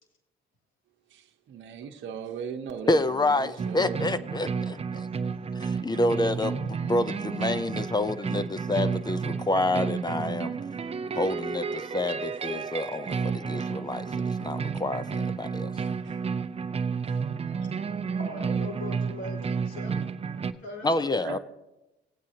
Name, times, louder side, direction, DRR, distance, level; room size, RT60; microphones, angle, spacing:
voice 1, 1.1-4.1 16.0-16.2 21.2-21.4, right 7 dB, 70° right, 1 dB, 0.9 m, -38 dB
voice 2, 2.9-5.1 5.6-10.5 11.1-15.7 20.8-21.4, left 2 dB, 20° left, 13 dB, 0.6 m, -28 dB
sound 1, 3.6-20.5, right 5 dB, 30° right, 0.6 m, -31 dB
voice 3, 18.2-20.0 20.4-21.2, left 2 dB, 75° left, -1 dB, 3.3 m, -40 dB
18.5 x 8.8 x 2.9 m, 0.98 s
cardioid pair, 90°, 20 cm